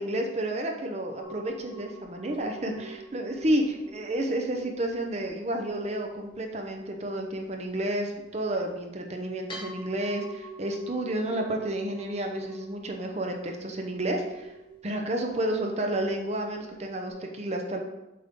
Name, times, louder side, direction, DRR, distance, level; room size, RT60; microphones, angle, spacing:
voice 1, 0.0-14.5 14.8-17.8, right 1 dB, 35° right, 2 dB, 0.7 m, -31 dB
sound 1, 1.2-17.1, right 3 dB, 25° left, 1.4 m, -47 dB
7.6 x 5.2 x 3.6 m, 0.98 s
head